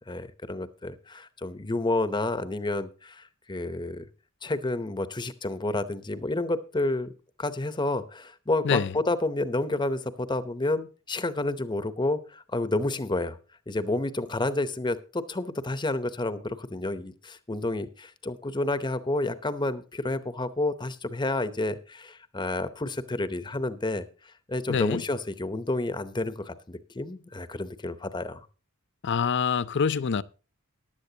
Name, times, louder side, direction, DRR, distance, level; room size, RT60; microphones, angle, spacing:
voice 1, 0.0-4.0 4.4-7.1 7.4-13.4 13.7-28.5, left 2 dB, 20° left, 0.7 m, -30 dB
voice 2, 24.7-25.0 29.0-30.2, left 6 dB, 55° left, 0.5 m, -25 dB
15.0 x 11.0 x 2.8 m
head